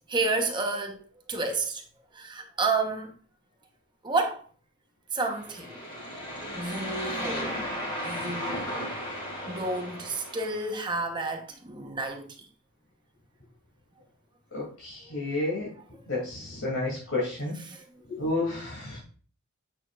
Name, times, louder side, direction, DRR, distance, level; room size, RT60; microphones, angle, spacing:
voice 1, 0.1-1.0 1.3-1.8 2.1-3.1 4.0-4.4 5.1-5.9 6.5-7.7 8.0-8.7 9.5-12.5 17.7-17.8, right 3 dB, 20° right, 1.0 m, -30 dB
sound 1, 5.3-10.8, equal, 25° left, 3.6 m, -35 dB
voice 2, 14.5-15.7 16.1-17.5 18.1-19.0, left 2 dB, 70° left, 2.8 m, -31 dB
8.8 x 6.4 x 2.5 m
head